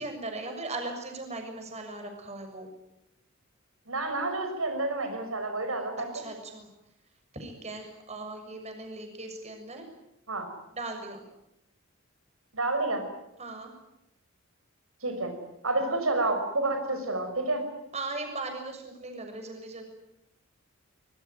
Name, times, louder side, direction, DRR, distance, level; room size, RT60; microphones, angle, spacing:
voice 1, 0.0-2.7 6.1-6.7 7.3-9.9 10.7-11.2 13.4-13.7 17.9-19.8, right 2 dB, 30° right, 4 dB, 6.6 m, -38 dB
voice 2, 3.9-6.1 10.3-10.5 12.5-13.0 15.0-15.3 15.6-17.6, right 2 dB, 85° right, 6 dB, 5.7 m, -29 dB
25.0 x 22.0 x 9.4 m, 0.83 s
head